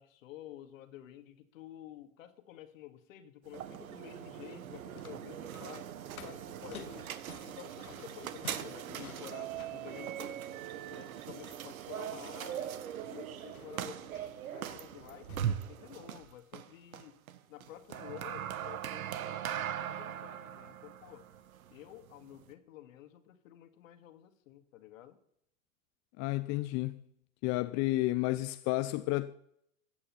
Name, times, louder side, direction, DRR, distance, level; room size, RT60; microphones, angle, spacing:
voice 1, 0.0-5.9 6.2-7.1 7.4-10.5 10.9-12.8 13.1-14.1 14.5-17.2 17.5-21.3 21.7-25.2, left 13 dB, 65° left, 2.1 m, -51 dB
sound 1, 3.5-22.5, right 10 dB, 75° right, 1.4 m, -41 dB
sound 2, 4.7-15.4, left 8 dB, 85° left, 1.7 m, -54 dB
voice 2, 26.2-27.0 27.4-29.3, left 18 dB, 40° left, 0.6 m, -31 dB
15.5 x 8.7 x 7.1 m
hypercardioid pair, 105°, 42 cm